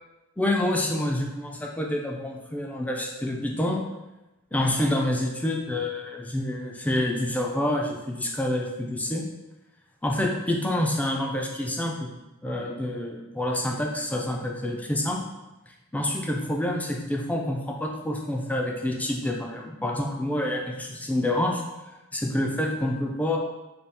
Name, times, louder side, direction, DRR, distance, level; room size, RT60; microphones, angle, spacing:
voice 1, 0.4-3.8 4.5-9.2 10.0-12.1 12.4-15.3 15.9-21.6 22.1-23.4, left 1 dB, 5° left, 0 dB, 0.4 m, -27 dB
4.2 x 2.3 x 3.4 m, 1.0 s
head